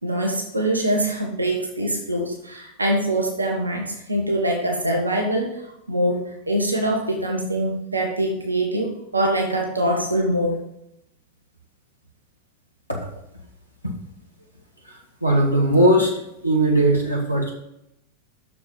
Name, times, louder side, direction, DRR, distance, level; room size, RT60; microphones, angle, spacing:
voice 1, 0.0-10.6, right 1 dB, 80° right, 1 dB, 1.4 m, -24 dB
voice 2, 14.8-16.1 16.4-17.5, right 1 dB, 90° left, -1 dB, 1.7 m, -19 dB
6.8 x 6.8 x 5.3 m, 0.82 s
figure-of-eight pair, 90°, 0 cm